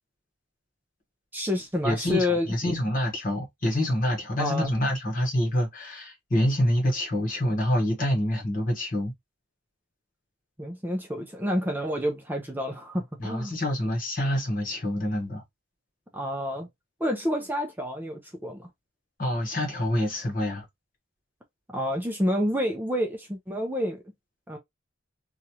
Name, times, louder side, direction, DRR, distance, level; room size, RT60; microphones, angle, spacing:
voice 1, 1.3-2.5 4.4-4.7 10.6-13.6 16.1-16.7 17.0-18.7 21.7-24.0 24.5-24.6, left 1 dB, 10° right, 0.5 m, -29 dB
voice 2, 1.8-9.1 13.2-15.4 19.2-20.6, left 1 dB, 45° left, 1.2 m, -26 dB
3.0 x 2.4 x 2.8 m
head